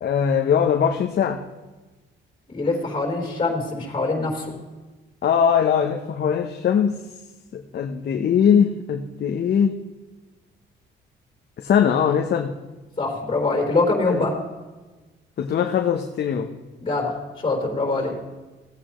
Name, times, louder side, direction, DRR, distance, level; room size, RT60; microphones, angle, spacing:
voice 1, 0.0-1.4 5.2-7.0 7.5-9.7 11.6-12.5 14.1-14.2 15.4-16.5, left 7 dB, 55° left, 4 dB, 0.9 m, -21 dB
voice 2, 2.5-4.5 13.0-14.4 16.8-17.1 17.4-18.1, left 3 dB, 25° left, 1 dB, 4.0 m, -23 dB
17.0 x 8.8 x 3.1 m, 1.2 s
cardioid pair, 90°, 20 cm